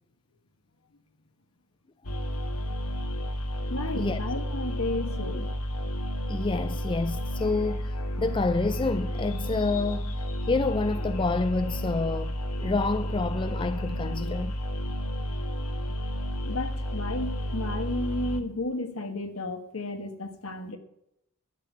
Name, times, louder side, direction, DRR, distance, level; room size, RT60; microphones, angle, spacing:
sound 1, 2.0-18.4, equal, 90° left, 1.4 m, -31 dB
voice 1, 3.7-5.5 16.4-20.8, left 2 dB, 65° left, 1.6 m, -33 dB
voice 2, 6.3-7.9 8.2-10.2 10.5-14.6, left 3 dB, 20° left, 0.4 m, -28 dB
12.0 x 6.5 x 8.3 m
head